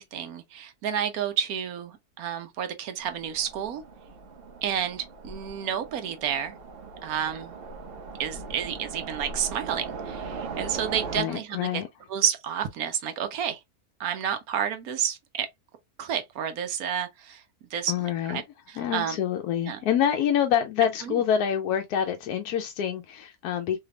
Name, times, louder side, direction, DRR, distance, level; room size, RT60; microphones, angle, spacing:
voice 1, 0.0-3.8 4.6-6.6 7.0-7.6 8.2-11.8 12.1-13.6 14.0-15.5 16.0-17.4 17.7-18.4 18.7-19.2 19.6-19.8 21.0-21.1, right 9 dB, 75° right, 1.1 m, -30 dB
Train, 3.0-11.2, right 4 dB, 55° right, 0.6 m, -39 dB
voice 2, 11.2-11.9 17.9-18.4 18.8-23.8, left 9 dB, 85° left, 1.1 m, -26 dB
3.3 x 3.2 x 2.2 m
omnidirectional pair, 1.6 m